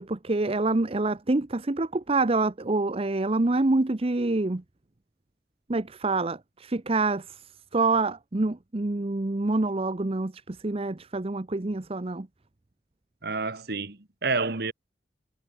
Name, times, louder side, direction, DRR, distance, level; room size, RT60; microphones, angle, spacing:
voice 1, 0.0-4.6 5.7-12.3, right 2 dB, 35° right, 0.8 m, -26 dB
voice 2, 13.2-14.7, right 4 dB, 65° right, 1.8 m, -29 dB
head